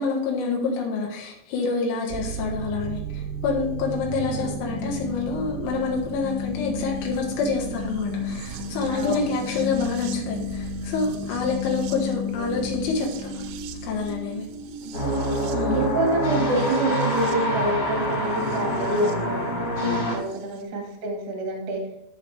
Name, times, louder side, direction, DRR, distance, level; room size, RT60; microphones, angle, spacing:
voice 1, 0.0-13.3 13.8-14.5 15.5-15.9 19.8-20.1, left 4 dB, 85° left, -2 dB, 4.0 m, -27 dB
sound 1, 2.1-19.1 20.3-20.4, left 1 dB, 80° right, 2.7 m, -33 dB
voice 2, 4.3-4.6 8.9-9.3 12.3-12.5 14.8-15.3 15.7-19.5 20.1-21.9, right 1 dB, 45° right, 1 dB, 1.9 m, -27 dB
sound 2, 14.9-20.2, equal, 30° left, 4.2 m, -26 dB
14.0 x 5.9 x 3.4 m, 0.78 s
omnidirectional pair, 5.4 m